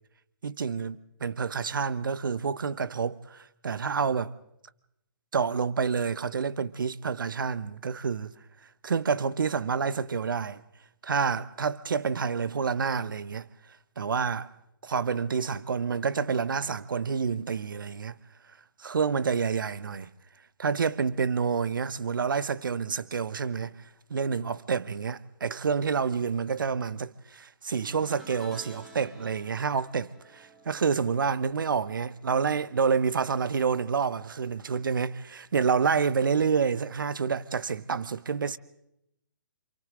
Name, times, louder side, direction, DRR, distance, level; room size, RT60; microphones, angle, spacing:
voice 1, 0.4-4.3 5.3-8.3 8.8-10.6 11.0-13.5 14.0-14.5 14.8-18.1 18.8-20.1 20.6-23.8 24.1-38.6, right 6 dB, 70° right, 0.9 m, -28 dB
sound 1, 27.8-33.2 33.5-33.9 35.1-35.2, right 3 dB, ahead, 2.6 m, -52 dB
27.5 x 27.5 x 3.8 m
figure-of-eight pair, 135°, 11 cm